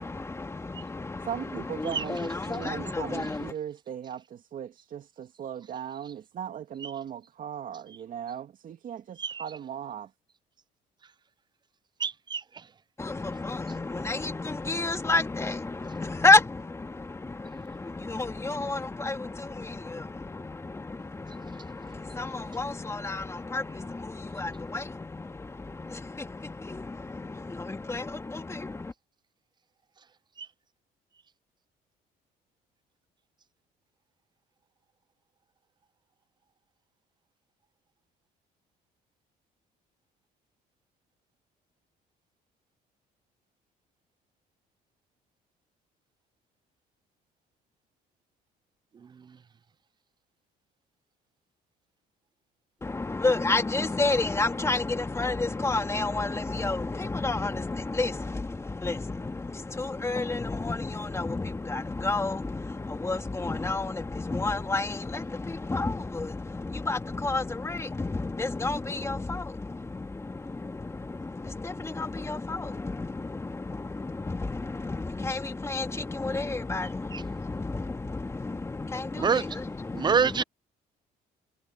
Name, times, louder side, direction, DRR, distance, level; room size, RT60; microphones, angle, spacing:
voice 1, 0.0-3.5 13.0-28.9 52.8-80.4, left 3 dB, 15° left, 2.1 m, -31 dB
voice 2, 1.3-10.1, right 9 dB, 55° right, 2.6 m, -38 dB
voice 3, 12.0-12.4 79.2-79.4 79.9-80.4, right 6 dB, 25° right, 0.4 m, -25 dB
cardioid pair, 110°, 17 cm